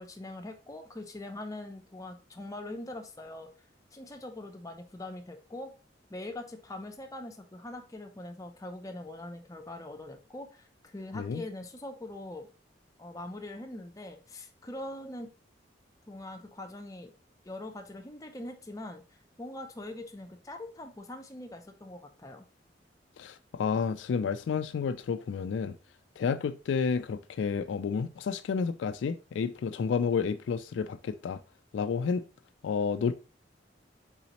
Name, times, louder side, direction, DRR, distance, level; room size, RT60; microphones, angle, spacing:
voice 1, 0.0-3.5 3.9-5.7 6.1-12.5 13.0-15.3 16.1-17.1 17.4-19.0 19.4-22.5, left 1 dB, 20° left, 0.6 m, -42 dB
voice 2, 23.2-25.7 26.2-31.4 31.7-32.2 32.6-33.1, left 5 dB, 80° left, 0.3 m, -30 dB
4.1 x 3.9 x 2.9 m
head